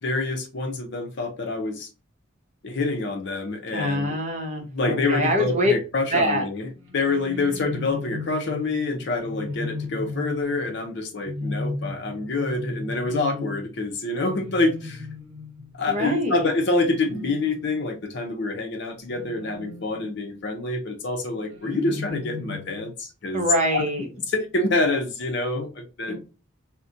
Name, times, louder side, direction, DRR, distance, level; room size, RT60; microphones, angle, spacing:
voice 1, 0.0-1.9 2.6-4.2 4.7-6.7 6.9-15.1 15.7-23.9 24.3-26.2, left 3 dB, 55° left, 0.6 m, -26 dB
voice 2, 3.7-5.7 6.1-6.4 13.0-13.6 15.9-16.5 23.3-24.1 26.1-26.2, equal, 30° right, 0.8 m, -25 dB
sound 1, 6.7-18.3 19.1-20.4 21.4-22.9, left 2 dB, 65° right, 0.8 m, -36 dB
4.0 x 2.1 x 2.6 m
head